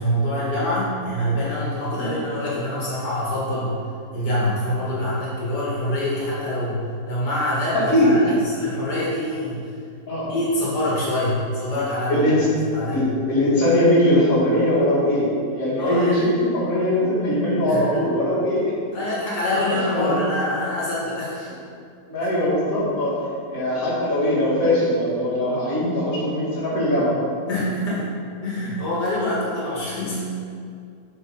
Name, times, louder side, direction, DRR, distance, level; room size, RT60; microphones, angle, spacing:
voice 1, 0.0-3.8 4.1-9.7 10.3-13.1 15.8-16.3 17.7-17.9 18.9-21.5 22.2-22.3 27.5-28.1 28.4-30.3, left 1 dB, 90° left, -7 dB, 2.3 m, -25 dB
voice 2, 7.7-8.1 10.1-10.3 12.1-12.5 12.9-15.3 15.5-18.7 19.7-20.1 22.1-27.2, left 1 dB, 55° left, -8 dB, 2.3 m, -21 dB
6.9 x 4.7 x 5.4 m, 2.3 s
omnidirectional pair, 1.8 m